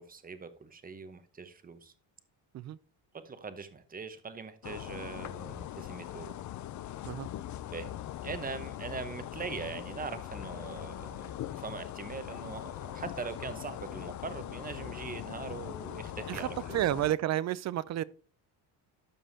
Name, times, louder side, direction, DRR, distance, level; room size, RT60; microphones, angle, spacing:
voice 1, 0.0-1.9 3.1-6.4 7.7-8.0 8.2-16.9, right 5 dB, 20° right, 0.9 m, -42 dB
sound 1, 4.6-17.2, left 12 dB, 45° left, 0.5 m, -41 dB
voice 2, 16.3-18.0, right 13 dB, 45° right, 0.4 m, -31 dB
12.5 x 5.4 x 2.7 m
cardioid pair, 110°, 40 cm